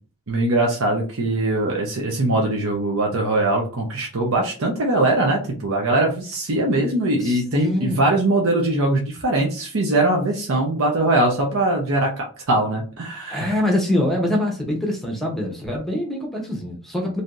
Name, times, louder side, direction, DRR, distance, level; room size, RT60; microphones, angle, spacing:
voice 1, 0.3-13.5, right 2 dB, 60° right, 0 dB, 0.7 m, -21 dB
voice 2, 7.2-8.0 13.3-17.2, left 1 dB, ahead, -1 dB, 0.7 m, -24 dB
3.3 x 2.7 x 2.5 m, 0.38 s
head